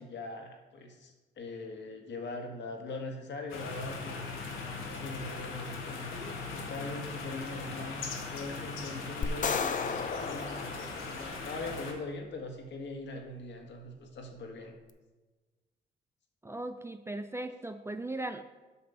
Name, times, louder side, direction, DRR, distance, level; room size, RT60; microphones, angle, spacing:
voice 1, 0.0-4.2 5.0-9.7 10.1-14.8, left 2 dB, 65° left, 3 dB, 1.7 m, -41 dB
sound 1, 3.5-11.9, left 4 dB, 85° left, 1.6 m, -39 dB
sound 2, 9.2-11.6, left 6 dB, 40° left, 0.6 m, -34 dB
voice 2, 16.4-18.4, right 2 dB, 15° right, 9 dB, 0.4 m, -38 dB
8.4 x 5.9 x 5.6 m, 1.3 s
cardioid pair, 90°, 20 cm